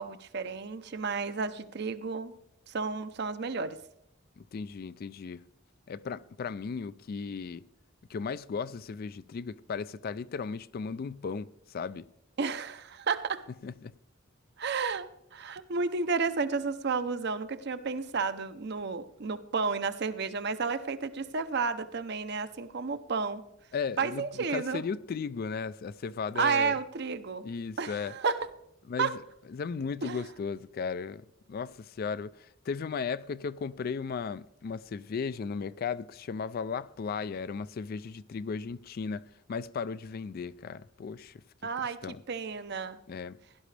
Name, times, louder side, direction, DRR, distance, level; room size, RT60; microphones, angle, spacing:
voice 1, 0.0-2.3 2.7-3.8 12.4-13.4 14.6-23.4 24.0-24.8 26.3-27.4 27.8-28.5 29.0-29.1 30.0-30.2 41.6-43.0, right 5 dB, 55° right, 0.7 m, -32 dB
voice 2, 4.4-5.4 5.9-7.7 8.1-12.1 13.6-13.9 23.7-26.7 27.4-28.1 28.9-29.2 29.5-41.4 42.0-42.2 43.1-43.4, left 5 dB, 50° left, 0.3 m, -36 dB
16.5 x 11.0 x 3.3 m
head